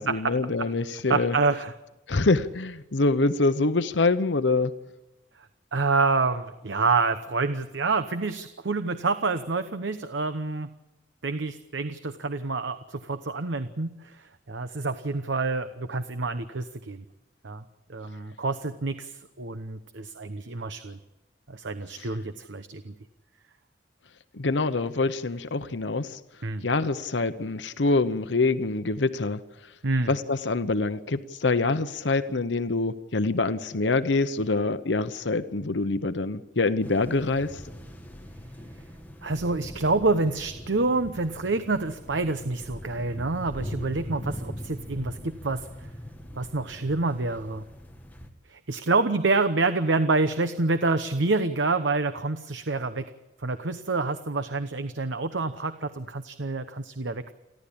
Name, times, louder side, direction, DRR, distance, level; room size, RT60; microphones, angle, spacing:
voice 1, 0.0-1.4 2.1-4.7 22.0-22.1 24.3-26.2 26.6-29.4 30.1-37.6, left 3 dB, 85° left, 11 dB, 0.9 m, -25 dB
voice 2, 1.1-1.7 5.7-10.7 11.2-17.0 17.4-17.6 17.9-21.0 21.5-22.9 26.4-26.6 29.8-30.1 39.2-45.9 46.4-47.6 48.5-53.1 53.4-57.3, right 3 dB, 90° right, 10 dB, 1.0 m, -27 dB
sound 1, 36.8-48.3, equal, 10° left, 1.9 m, -41 dB
29.5 x 12.0 x 8.6 m, 1.0 s
head